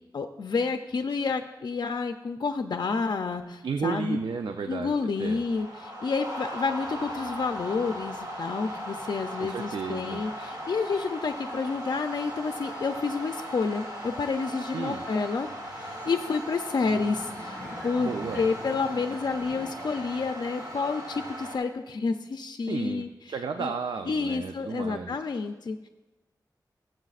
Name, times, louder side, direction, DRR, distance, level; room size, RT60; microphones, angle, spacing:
voice 1, 0.1-4.2 4.7-18.1 18.3-23.1 23.6-23.7 24.1-25.9, left 4 dB, 70° left, 6 dB, 0.5 m, -29 dB
sound 1, 3.6-21.6, equal, 60° right, 2.1 m, -38 dB
voice 2, 3.6-4.9 5.2-5.4 9.4-10.2 14.7-15.0 18.0-18.5 22.7-25.2, right 5 dB, 85° right, 6 dB, 0.5 m, -33 dB
sound 2, 16.8-19.9, equal, 10° right, 3.4 m, -44 dB
17.5 x 7.7 x 2.4 m, 1.1 s
wide cardioid pair, 70°, 8 cm